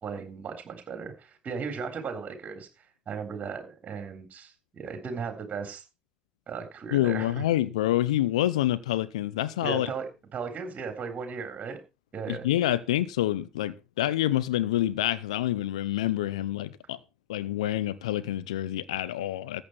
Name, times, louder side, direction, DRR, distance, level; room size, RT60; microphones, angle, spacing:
voice 1, 0.0-2.7 3.1-5.8 6.5-7.4 9.6-11.8 12.1-12.4, right 5 dB, 45° right, 3.7 m, -36 dB
voice 2, 6.9-9.9 12.3-17.0 17.3-19.6, left 13 dB, 90° left, 0.7 m, -27 dB
14.5 x 8.7 x 4.5 m
hypercardioid pair, 60°, 3 cm